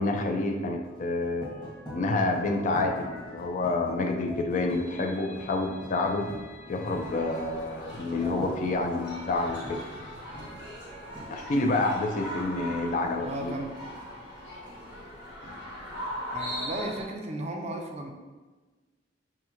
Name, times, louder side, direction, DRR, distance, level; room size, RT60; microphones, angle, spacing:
voice 1, 0.0-1.5 1.9-6.3 6.7-9.8 11.3-13.5, left 2 dB, 45° left, 3 dB, 0.4 m, -28 dB
sound 1, 0.8-11.3, equal, 25° left, 1.5 m, -43 dB
sound 2, 6.8-17.0, equal, 70° left, 1.3 m, -40 dB
voice 2, 13.2-13.7 16.3-18.1, right 1 dB, 35° right, 3 dB, 0.4 m, -35 dB
5.6 x 2.1 x 3.0 m, 1.3 s
head